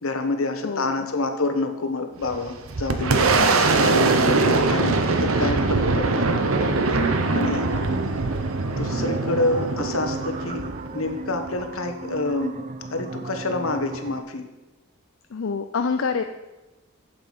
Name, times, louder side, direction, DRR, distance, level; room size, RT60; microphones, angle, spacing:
voice 1, 0.0-6.4 6.9-7.0 7.3-7.6 8.6-12.5 12.9-14.4, left 2 dB, 85° left, 6 dB, 1.2 m, -27 dB
voice 2, 0.6-1.1 3.4-3.5 6.6-6.7 15.3-16.2, left 5 dB, 70° left, 7 dB, 0.5 m, -27 dB
Boom, 2.2-11.6, right 3 dB, 85° right, 0.9 m, -22 dB
sound 1, 4.2-14.2, right 3 dB, 35° right, 0.6 m, -36 dB
8.0 x 7.4 x 5.6 m, 1.1 s
head